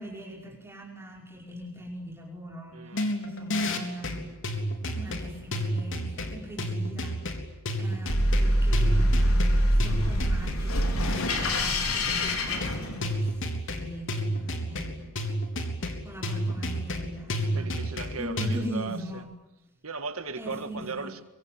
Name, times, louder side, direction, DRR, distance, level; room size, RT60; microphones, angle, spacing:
voice 1, 0.0-2.8 3.2-4.3 5.0-7.2 7.8-13.4 13.8-15.1 16.0-17.7 18.2-19.3 20.4-21.1, equal, 10° right, 5.2 m, -40 dB
voice 2, 2.7-3.1 17.5-19.2 19.8-21.2, right 4 dB, 75° right, 1.8 m, -37 dB
sound 1, 2.9-18.5, equal, 60° left, 3.7 m, -31 dB
sound 2, 8.1-13.4, equal, 85° left, 4.6 m, -25 dB
24.5 x 24.0 x 9.3 m
head